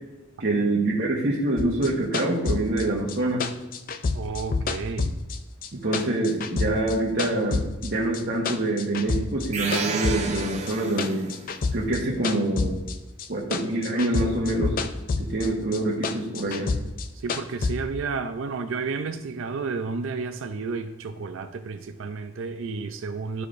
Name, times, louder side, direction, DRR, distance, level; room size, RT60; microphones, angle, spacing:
voice 1, 0.4-3.5 5.7-11.3 11.7-12.8 13.3-14.8 15.2-16.7, right 2 dB, 55° right, -5 dB, 1.1 m, -25 dB
sound 1, 1.6-5.7 5.9-7.9 8.1-9.5 9.7-13.3 13.5-15.5 15.7-17.7, left 4 dB, 45° left, 0.4 m, -28 dB
voice 2, 4.1-5.2 16.5-16.8 17.1-23.5, right 4 dB, 80° right, 7 dB, 0.4 m, -32 dB
sound 2, 9.5-11.4, right 4 dB, 35° right, 0.6 m, -31 dB
11.5 x 4.9 x 2.5 m, 1.0 s
head